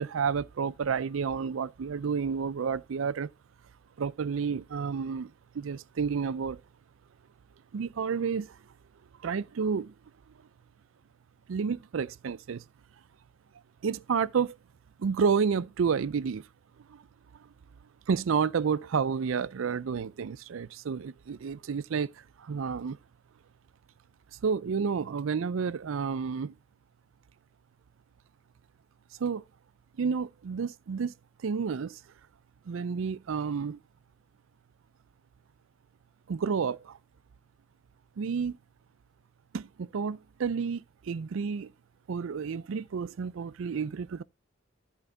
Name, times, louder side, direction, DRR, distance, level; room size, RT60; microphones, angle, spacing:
voice 1, 0.0-3.3 4.0-6.6 7.7-8.6 9.2-9.9 11.5-12.6 13.8-14.5 15.0-16.5 16.9-17.0 17.4-17.5 18.1-22.1 22.4-23.0 24.4-26.5 29.2-29.4 30.0-31.1 31.4-32.0 32.7-33.8 36.3-37.0 38.2-38.6 39.5-41.7 42.1-44.2, right 6 dB, 85° right, 0.4 m, -30 dB
12.0 x 4.5 x 3.9 m
head